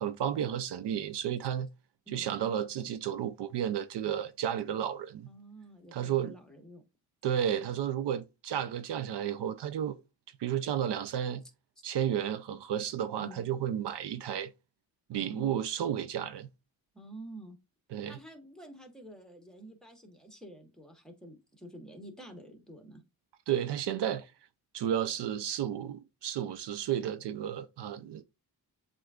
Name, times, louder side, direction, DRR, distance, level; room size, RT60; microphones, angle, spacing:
voice 1, 0.0-1.7 2.1-5.3 5.9-6.3 7.2-10.0 10.4-11.4 11.8-14.5 15.1-16.5 17.9-18.2 23.5-24.3 24.7-28.2, right 10 dB, 70° right, 0.5 m, -32 dB
voice 2, 5.3-6.8 13.2-13.4 15.1-15.6 16.9-17.6 18.1-23.0, right 1 dB, ahead, 1.4 m, -49 dB
7.6 x 2.6 x 2.4 m
cardioid pair, 85°, 43 cm